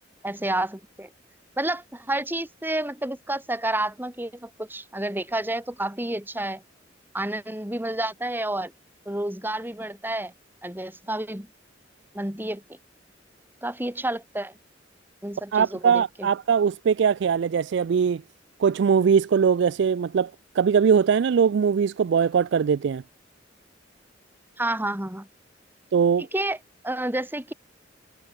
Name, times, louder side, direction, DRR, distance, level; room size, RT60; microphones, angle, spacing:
voice 1, 0.2-1.1 1.6-6.6 7.1-8.7 9.0-10.3 10.6-11.5 12.1-12.6 13.6-14.6 15.2-16.3 24.6-25.3 26.2-26.6 26.8-27.5, right 1 dB, 10° right, 3.0 m, -30 dB
voice 2, 15.5-18.2 18.6-20.3 20.6-23.0 25.9-26.3, right 6 dB, 65° right, 0.4 m, -21 dB
head